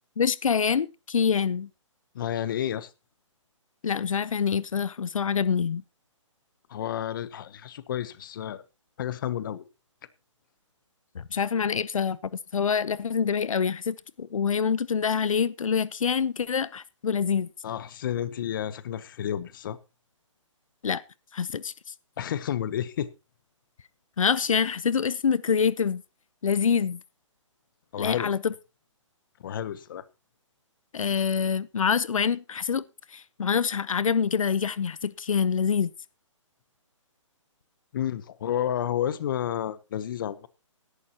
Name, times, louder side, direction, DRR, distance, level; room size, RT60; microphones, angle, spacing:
voice 1, 0.2-1.7 3.8-5.8 11.1-17.5 20.8-21.0 21.3-21.9 24.2-26.0 26.4-27.0 28.0-28.5 30.9-32.8 33.1-35.9, left 6 dB, 85° left, 0.7 m, -26 dB
voice 2, 2.1-2.9 6.7-8.6 9.0-9.6 17.6-19.8 22.2-23.1 27.9-28.3 29.4-30.0 37.9-40.5, left 10 dB, 40° left, 0.9 m, -31 dB
16.5 x 11.5 x 2.9 m
hypercardioid pair, 160°, 17 cm